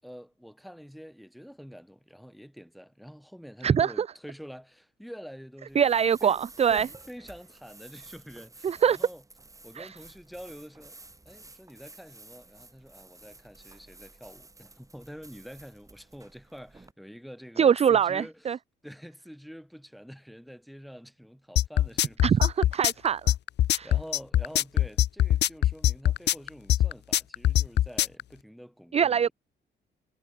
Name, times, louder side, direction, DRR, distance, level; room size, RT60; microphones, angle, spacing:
voice 1, 0.0-5.9 6.2-6.4 6.7-9.2 9.6-11.0 11.3-18.5 18.8-22.7 23.8-29.3, equal, ahead, 7.2 m, -46 dB
voice 2, 3.6-4.1 5.8-6.9 8.6-9.0 9.8-9.9 17.6-18.6 22.2-23.3 23.7-23.9 28.9-29.3, right 8 dB, 30° right, 0.5 m, -23 dB
sound 1, 5.7-16.9, right 2 dB, 15° right, 2.4 m, -52 dB
sound 2, 21.6-28.2, left 12 dB, 60° left, 0.6 m, -22 dB
cardioid pair, 90°, 20 cm